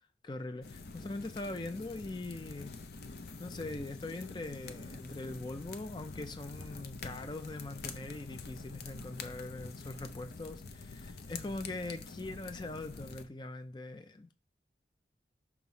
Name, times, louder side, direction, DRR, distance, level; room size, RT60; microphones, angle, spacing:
voice 1, 0.2-2.7 3.4-14.3, left 2 dB, 25° left, 0.5 m, -42 dB
sound 1, 0.6-13.3, left 3 dB, 65° left, 0.6 m, -46 dB
5.9 x 3.1 x 5.5 m
head